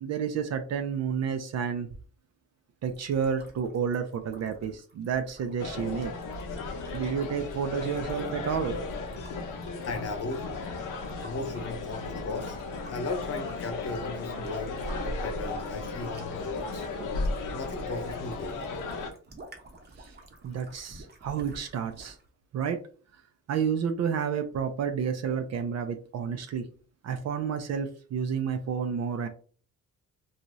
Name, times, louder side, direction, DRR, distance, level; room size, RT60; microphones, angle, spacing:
voice 1, 0.0-1.9 2.8-6.1 6.9-8.7 17.0-17.1 20.0-20.1 20.4-22.2 22.5-22.8 23.5-26.7 27.0-29.3, right 7 dB, 60° right, 7 dB, 0.4 m, -30 dB
sound 1, 2.8-15.1 15.4-22.3, right 2 dB, 35° right, 0.7 m, -51 dB
sound 2, 5.6-19.1, left 3 dB, 85° left, 0.7 m, -35 dB
voice 2, 9.8-10.4 11.2-12.6 12.9-14.7 15.0-16.9 17.5-18.6, left 3 dB, 50° left, 5 dB, 0.8 m, -36 dB
2.6 x 2.3 x 3.0 m, 0.40 s
cardioid pair, 115°, 31 cm